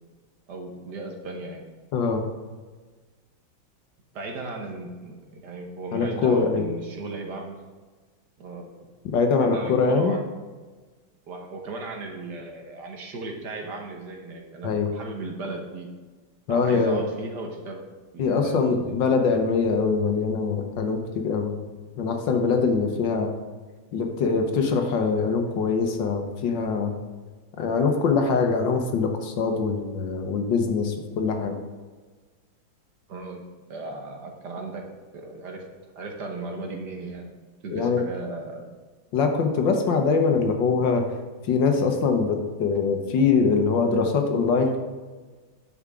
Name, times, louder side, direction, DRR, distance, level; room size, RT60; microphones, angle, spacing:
voice 1, 0.5-1.6 4.1-7.6 8.4-8.9 9.4-10.2 11.3-15.9 16.5-17.9 18.1-19.0 33.1-33.4 33.7-34.9 35.1-35.6 36.0-37.3 37.6-38.7, right 2 dB, 60° right, 2 dB, 1.7 m, -36 dB
voice 2, 1.9-2.2 5.9-6.7 9.1-10.1 14.6-14.9 16.5-17.0 18.2-21.6 22.0-23.3 23.9-26.9 27.6-31.5 37.7-38.0 39.1-41.1 41.4-44.8, left 5 dB, 75° left, 4 dB, 1.6 m, -23 dB
9.7 x 7.1 x 3.6 m, 1.3 s
omnidirectional pair, 2.1 m